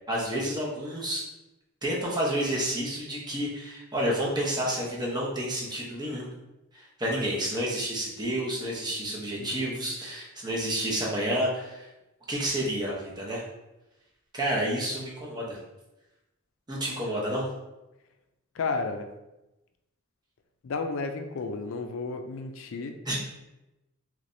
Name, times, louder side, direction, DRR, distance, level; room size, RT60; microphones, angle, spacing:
voice 1, 0.1-1.3 1.8-6.3 6.7-11.9 12.3-13.4 14.3-15.6 16.7-17.5 23.0-23.3, right 1 dB, 20° right, -4 dB, 0.8 m, -30 dB
voice 2, 9.4-9.7 18.6-19.1 20.6-23.0, left 4 dB, 65° left, 6 dB, 0.4 m, -32 dB
3.3 x 3.2 x 2.6 m, 0.97 s
head